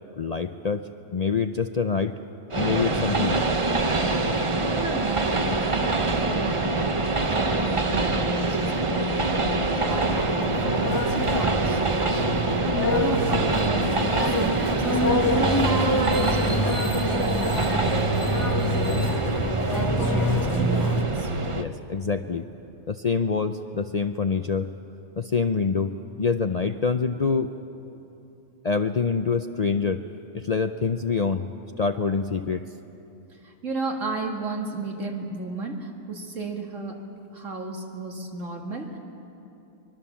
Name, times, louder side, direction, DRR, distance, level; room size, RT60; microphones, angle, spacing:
voice 1, 0.2-2.1 2.5-3.5 21.5-22.5 22.9-24.7 25.2-27.5 28.6-30.0 30.3-31.5 31.8-32.7, left 5 dB, 45° left, 8 dB, 0.5 m, -26 dB
Train, 2.5-21.6, right 3 dB, 30° right, 0.8 m, -25 dB
voice 2, 4.7-12.7 12.9-19.3 19.7-21.3 33.4-37.0 37.3-39.0, right 2 dB, 80° right, 1 dB, 2.6 m, -33 dB
sound 1, 9.9-21.0, left 1 dB, 15° left, 1.8 m, -26 dB
24.5 x 22.5 x 7.2 m, 2.8 s
omnidirectional pair, 1.3 m